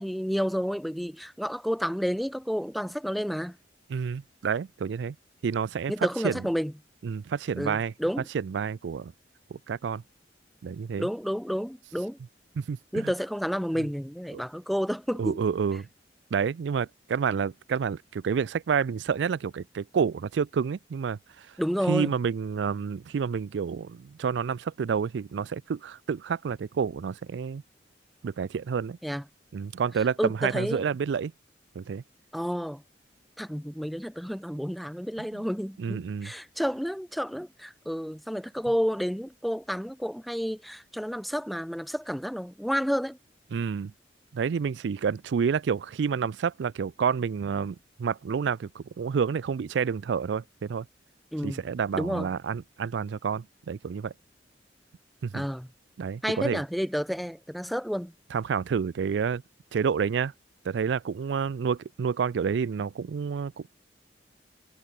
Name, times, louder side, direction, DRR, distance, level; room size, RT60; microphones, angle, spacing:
voice 1, 0.0-3.6 5.9-6.7 7.6-8.3 11.0-12.2 12.9-15.4 21.6-22.1 29.0-29.2 30.2-30.8 32.3-32.8 33.4-43.2 51.3-51.6 52.0-52.3 55.3-55.7 56.2-58.1, equal, ahead, 0.3 m, -30 dB
voice 2, 3.9-5.2 5.4-5.9 6.2-6.5 7.0-7.9 8.3-9.1 9.5-10.0 10.6-11.1 12.6-13.1 13.8-13.9 14.3-14.4 15.2-15.9 16.3-21.5 21.9-27.6 28.2-29.0 29.5-31.3 31.8-32.0 35.2-35.4 35.8-36.3 43.5-43.9 44.3-50.9 51.4-54.1 55.2-55.4 56.0-56.6 58.3-59.4 59.7-60.3 60.6-63.7, right 6 dB, 80° right, 0.4 m, -29 dB
head